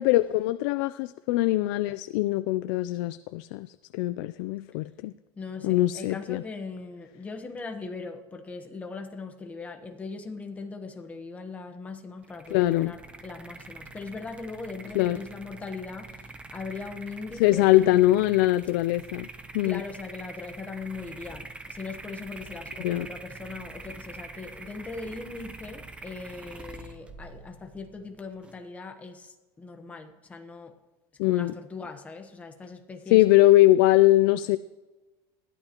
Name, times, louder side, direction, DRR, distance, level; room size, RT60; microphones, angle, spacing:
voice 1, 0.0-5.1 5.6-6.4 12.5-12.9 14.9-15.2 17.4-19.3 19.5-19.8 22.8-23.1 31.2-31.6 33.1-34.6, left 16 dB, 70° left, 13 dB, 0.4 m, -22 dB
voice 2, 5.4-16.2 16.5-18.2 19.6-30.7 31.2-33.2, left 4 dB, 10° left, 5 dB, 1.0 m, -40 dB
sound 1, 12.2-28.6, right 3 dB, 10° right, 0.6 m, -45 dB
20.5 x 13.0 x 2.9 m, 1.2 s
cardioid pair, 175°, 12 cm